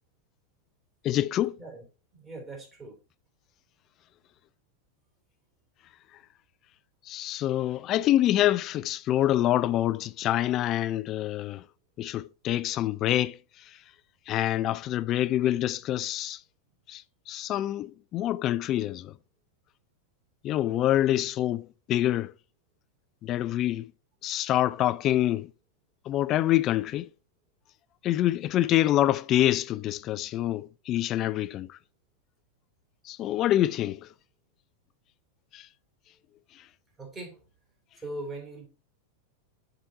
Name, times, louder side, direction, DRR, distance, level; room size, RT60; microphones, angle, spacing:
voice 1, 1.0-1.6 7.1-11.6 12.0-13.4 14.3-16.4 16.9-19.1 20.4-22.3 23.2-23.8 24.2-25.5 26.1-27.1 28.0-31.8 33.1-34.1 35.5-35.7, left 13 dB, 35° left, 0.3 m, -26 dB
voice 2, 2.1-2.9 37.0-37.4 38.0-38.7, right 2 dB, 20° right, 3.1 m, -40 dB
7.6 x 3.9 x 4.3 m
figure-of-eight pair, 90°, 0 cm